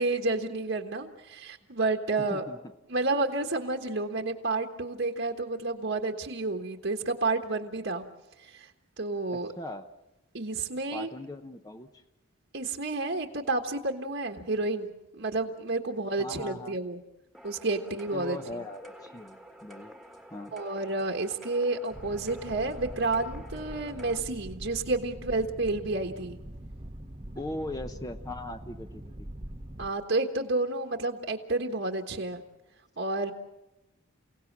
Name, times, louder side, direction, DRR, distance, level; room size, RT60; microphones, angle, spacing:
voice 1, 0.0-2.4 2.9-8.1 8.4-8.7 9.0-9.5 10.3-11.1 12.5-17.0 17.4-18.4 20.5-26.4 29.8-32.4 33.0-33.3, right 2 dB, 55° right, 2 dB, 1.4 m, -30 dB
voice 2, 9.3-9.9 10.9-12.0 16.2-16.8 18.1-19.9 20.3-20.5 27.4-29.3, left 2 dB, 15° left, 7 dB, 0.7 m, -39 dB
sound 1, 17.3-24.2, equal, ahead, 1.5 m, -50 dB
Boat Water vehicle, 21.9-29.9, right 1 dB, 25° right, 0.9 m, -43 dB
29.0 x 17.5 x 7.4 m, 0.98 s
head